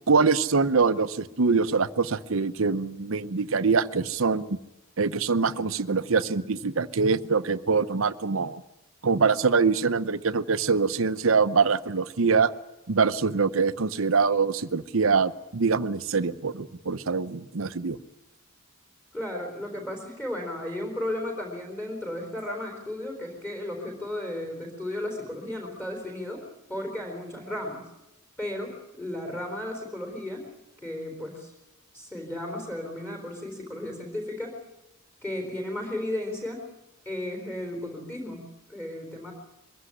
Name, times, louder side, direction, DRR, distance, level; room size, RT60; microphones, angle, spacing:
voice 1, 0.1-4.6 5.0-8.6 9.0-12.5 12.9-18.0, right 5 dB, 70° right, 13 dB, 0.8 m, -24 dB
voice 2, 19.1-26.4 26.7-27.8 28.4-30.5 30.8-31.5 31.9-34.6 35.2-36.7 37.1-39.3, left 1 dB, 10° left, 1 dB, 4.0 m, -34 dB
22.5 x 16.0 x 9.8 m, 0.95 s
head